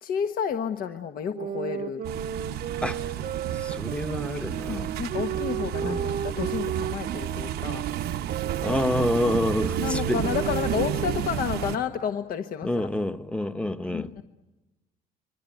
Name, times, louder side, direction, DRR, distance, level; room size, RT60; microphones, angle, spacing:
voice 1, 0.0-2.0 4.7-7.9 9.8-12.9 13.9-14.2, left 7 dB, 60° left, 6 dB, 1.3 m, -31 dB
sound 1, 1.3-11.3, right 9 dB, 50° right, 1.0 m, -34 dB
sound 2, 2.0-11.8, right 10 dB, 75° right, 1.0 m, -31 dB
voice 2, 2.8-3.1 3.5-4.9 5.8-6.2 8.6-10.2 12.6-14.1, left 1 dB, 5° left, 8 dB, 1.1 m, -28 dB
27.0 x 23.5 x 9.1 m, 1.1 s
cardioid pair, 110°, 17 cm